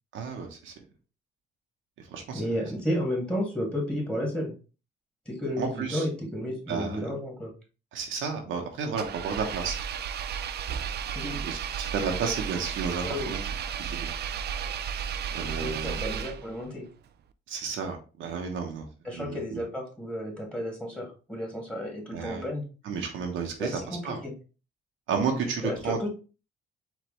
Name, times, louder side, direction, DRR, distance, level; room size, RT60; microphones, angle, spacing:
voice 1, 0.1-0.7 2.1-2.4 5.6-6.1 6.7-7.1 7.9-9.8 11.3-13.5 13.9-14.0 15.3-16.0 17.5-18.9 19.1-19.6 22.1-22.5 22.8-24.2 25.1-26.1, right 5 dB, 85° right, 2 dB, 1.1 m, -32 dB
voice 2, 2.3-4.5 5.3-7.5 11.1-11.4 13.0-13.3 15.4-16.9 19.0-22.6 23.6-24.3 25.6-26.1, equal, 5° left, -1 dB, 2.1 m, -32 dB
Engine, 9.0-16.7, right 8 dB, 55° right, 0.4 m, -33 dB
4.7 x 3.3 x 3.3 m, 0.34 s
cardioid pair, 90°, 20 cm